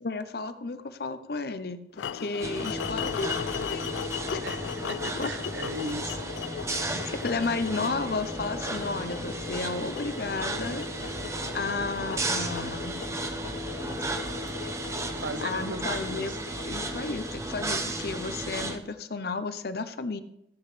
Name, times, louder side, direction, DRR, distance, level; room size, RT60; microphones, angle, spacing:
voice 1, 0.0-3.9 4.3-4.5 5.1-5.4 7.1-10.9 11.5-13.0 15.4-16.4 16.6-20.2, left 3 dB, 60° left, 0.7 m, -33 dB
sound 1, 2.0-18.1, left 8 dB, 90° left, 0.3 m, -38 dB
sound 2, 2.4-18.8, right 2 dB, 15° right, 0.7 m, -34 dB
voice 2, 4.9-6.2 6.9-7.1 15.1-16.4, right 2 dB, 85° right, 0.8 m, -38 dB
14.0 x 8.0 x 3.3 m
head